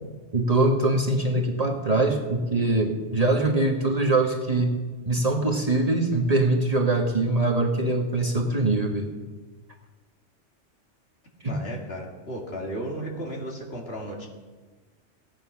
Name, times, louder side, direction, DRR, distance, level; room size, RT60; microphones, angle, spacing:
voice 1, 0.3-4.8 5.1-9.1, right 2 dB, 30° right, 0 dB, 1.4 m, -23 dB
voice 2, 11.5-14.3, equal, 55° left, -1 dB, 2.5 m, -34 dB
15.5 x 9.7 x 5.7 m, 1.3 s
omnidirectional pair, 1.3 m